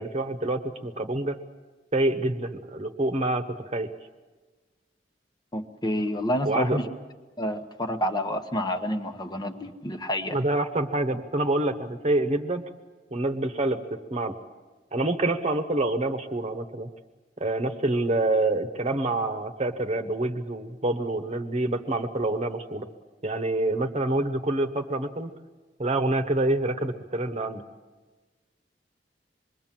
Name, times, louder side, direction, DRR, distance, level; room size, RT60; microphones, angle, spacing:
voice 1, 0.0-1.4 1.9-3.4 3.7-3.9 6.4-6.8 10.3-12.6 13.1-13.8 14.1-14.3 14.9-16.9 17.4-22.9 23.2-25.3 25.8-27.6, right 2 dB, 40° right, 6 dB, 1.2 m, -26 dB
voice 2, 5.5-6.9 7.4-10.4, equal, 25° left, 6 dB, 1.1 m, -29 dB
26.0 x 21.5 x 7.5 m, 1.3 s
head